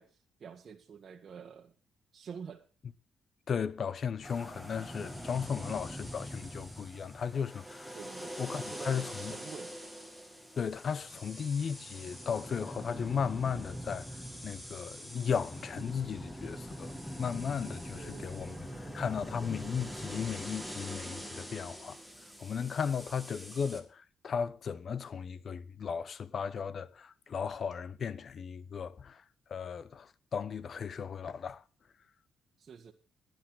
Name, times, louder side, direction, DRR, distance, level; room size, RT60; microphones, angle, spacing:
voice 1, 0.0-1.7 2.1-2.6 7.9-9.7 17.9-19.0 32.6-32.9, right 6 dB, 45° right, 1.4 m, -48 dB
voice 2, 3.5-8.0 8.4-9.4 10.6-14.1 14.4-22.0 22.4-29.2 29.5-31.6, left 7 dB, 50° left, 0.8 m, -36 dB
sound 1, 4.2-23.8, equal, 5° left, 2.2 m, -43 dB
12.0 x 10.5 x 5.7 m
cardioid pair, 90°, 0 cm